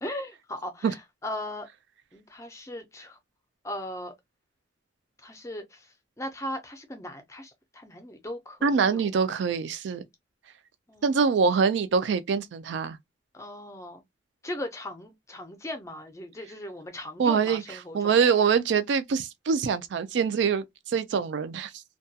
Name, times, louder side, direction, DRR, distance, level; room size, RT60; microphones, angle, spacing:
voice 1, 0.0-1.0 1.2-1.7 2.1-3.2 3.6-4.1 5.2-9.0 10.9-11.3 13.3-14.0 14.4-18.2, left 1 dB, 15° left, 0.5 m, -38 dB
voice 2, 8.6-10.0 11.0-13.0 17.2-21.8, right 6 dB, 65° right, 0.3 m, -24 dB
2.2 x 2.2 x 2.7 m
head